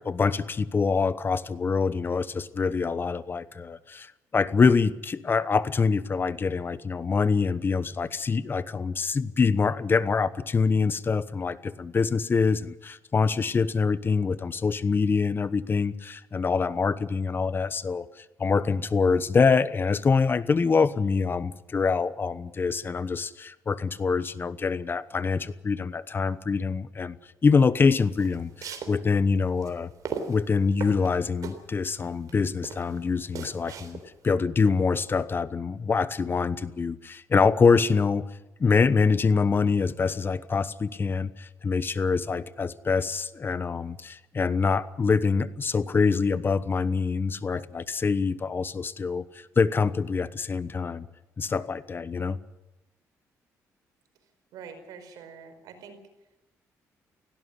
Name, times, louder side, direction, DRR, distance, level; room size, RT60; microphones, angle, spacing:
voice 1, 0.0-27.2 27.4-29.9 30.3-38.2 38.6-51.1 51.4-52.4, left 5 dB, 35° left, 16 dB, 1.0 m, -25 dB
sound 1, 28.0-34.3, right 6 dB, 65° right, 3.6 m, -38 dB
voice 2, 54.5-56.0, right 6 dB, 85° right, 7 dB, 4.9 m, -45 dB
18.5 x 16.5 x 9.8 m, 0.98 s
cardioid pair, 85°, 6 cm